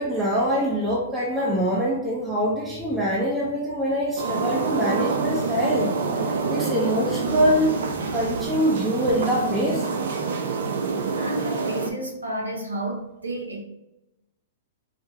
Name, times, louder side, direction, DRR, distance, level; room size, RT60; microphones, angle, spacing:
voice 1, 0.0-5.9 6.3-7.8 8.1-9.9, equal, 10° right, -6 dB, 0.8 m, -24 dB
sound 1, 4.2-11.9, right 4 dB, 70° right, 0.6 m, -27 dB
voice 2, 11.1-13.6, right 1 dB, 90° right, 1 dB, 0.9 m, -31 dB
4.7 x 2.3 x 2.8 m, 0.95 s
hypercardioid pair, 115°, 0 cm